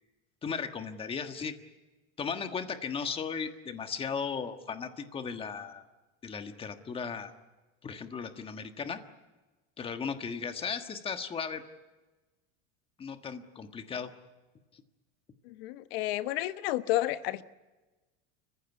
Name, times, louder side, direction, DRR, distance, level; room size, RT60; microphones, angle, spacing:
voice 1, 0.4-1.5 2.2-5.8 6.2-7.3 7.8-9.0 9.8-11.6 13.0-14.1 14.7-14.8, left 6 dB, 20° left, 1.5 m, -36 dB
voice 2, 15.4-17.4, left 15 dB, 75° left, 1.1 m, -31 dB
30.0 x 15.5 x 9.6 m
supercardioid pair, 155°, 30 cm